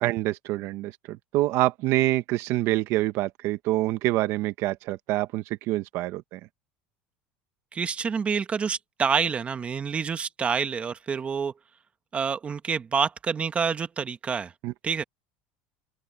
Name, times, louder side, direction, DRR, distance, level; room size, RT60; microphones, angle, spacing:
voice 1, 0.0-6.4 14.6-14.7, right 17 dB, 60° right, 1.1 m, -26 dB
voice 2, 7.7-11.5 12.1-14.5 14.8-15.0, right 6 dB, 25° right, 1.4 m, -27 dB
open air
supercardioid pair, 125°, 5 cm